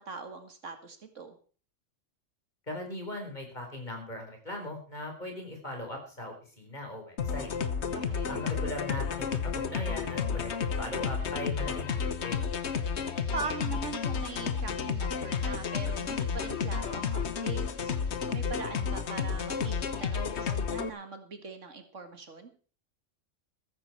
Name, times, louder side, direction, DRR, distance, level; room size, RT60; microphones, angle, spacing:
voice 1, 0.0-1.4 7.9-8.5 13.3-22.5, right 4 dB, 75° right, 7 dB, 2.3 m, -41 dB
voice 2, 2.7-7.5 8.3-12.4, left 1 dB, 35° left, 2 dB, 4.6 m, -39 dB
sound 1, 7.2-20.9, left 6 dB, 60° left, 1.3 m, -31 dB
14.5 x 14.0 x 4.4 m, 0.39 s
omnidirectional pair, 1.3 m